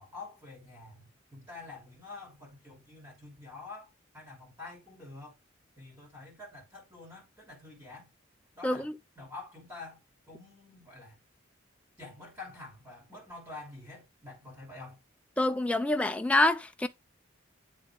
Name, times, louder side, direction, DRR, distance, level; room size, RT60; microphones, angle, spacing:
voice 1, 0.0-5.3 5.8-8.1 8.5-8.9 9.2-10.0 10.3-11.2 12.0-15.0, left 3 dB, 15° right, 3.5 m, -47 dB
voice 2, 8.6-8.9 15.4-16.9, left 1 dB, 5° left, 0.3 m, -26 dB
11.0 x 3.6 x 3.8 m
head